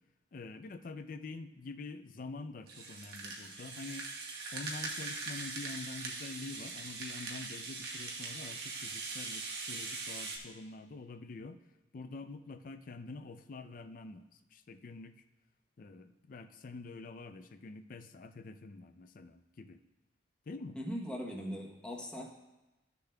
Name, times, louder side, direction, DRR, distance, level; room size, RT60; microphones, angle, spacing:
voice 1, 0.3-4.1 4.5-11.6 11.9-14.3 14.5-15.2 15.8-19.8 20.5-20.8, left 3 dB, 45° left, 10 dB, 0.4 m, -46 dB
Rattle (instrument), 2.7-10.4, right 4 dB, 55° right, 1.2 m, -41 dB
voice 2, 20.8-22.3, equal, 5° left, -2 dB, 0.9 m, -40 dB
13.5 x 6.8 x 2.2 m, 1.1 s
head